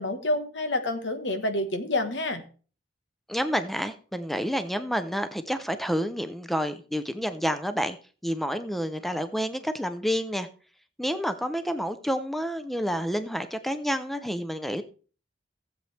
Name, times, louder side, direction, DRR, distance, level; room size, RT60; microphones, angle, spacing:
voice 1, 0.0-2.4, left 1 dB, 90° left, 8 dB, 1.4 m, -28 dB
voice 2, 3.3-8.0 8.2-10.5 11.0-14.8, equal, ahead, 10 dB, 0.6 m, -29 dB
16.0 x 7.8 x 3.4 m, 0.39 s
head